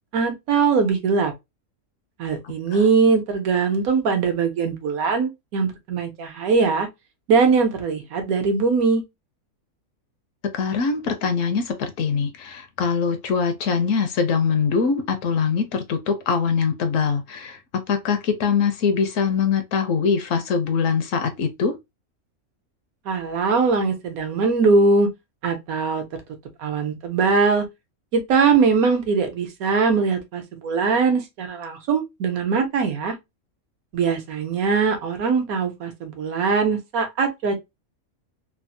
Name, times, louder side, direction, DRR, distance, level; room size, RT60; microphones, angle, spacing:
voice 1, 0.1-1.3 2.2-6.9 7.3-9.0 23.1-25.1 25.4-26.0 26.6-27.6 28.1-33.1 33.9-37.6, right 4 dB, 75° right, 1.3 m, -21 dB
voice 2, 10.5-21.8, left 6 dB, 70° left, 0.9 m, -23 dB
3.4 x 2.0 x 2.5 m
omnidirectional pair, 1.5 m